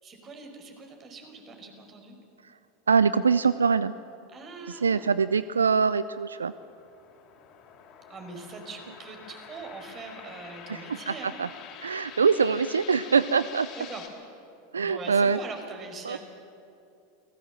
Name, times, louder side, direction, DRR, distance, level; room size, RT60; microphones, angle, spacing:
voice 1, 0.0-2.2 4.3-5.1 8.1-11.3 13.8-14.1 14.8-16.2, right 4 dB, 35° right, 4 dB, 5.3 m, -42 dB
voice 2, 2.9-3.9 4.7-6.5 10.7-11.5 11.8-13.7 14.7-15.4 16.0-16.2, right 5 dB, 85° right, 16 dB, 0.4 m, -24 dB
sound 1, 5.9-14.1, left 8 dB, 45° left, 4.3 m, -47 dB
29.0 x 18.5 x 7.4 m, 2.7 s
hypercardioid pair, 85°, 0 cm